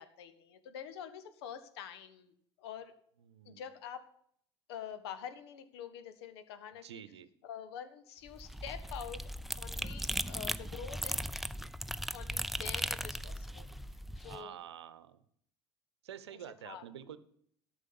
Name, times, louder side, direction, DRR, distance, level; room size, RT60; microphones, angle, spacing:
voice 1, 0.0-2.9 3.4-4.0 4.7-7.0 7.4-9.2 9.6-11.3 12.1-13.7 14.2-14.6 16.3-17.1, left 8 dB, 70° left, 10 dB, 1.4 m, -46 dB
voice 2, 3.3-3.6 6.8-7.3 14.3-15.2 16.0-17.2, right 10 dB, 80° right, 15 dB, 0.8 m, -48 dB
sound 1, 8.3-14.4, equal, ahead, 0.6 m, -38 dB
13.0 x 6.3 x 7.8 m, 0.66 s
figure-of-eight pair, 70°, 14 cm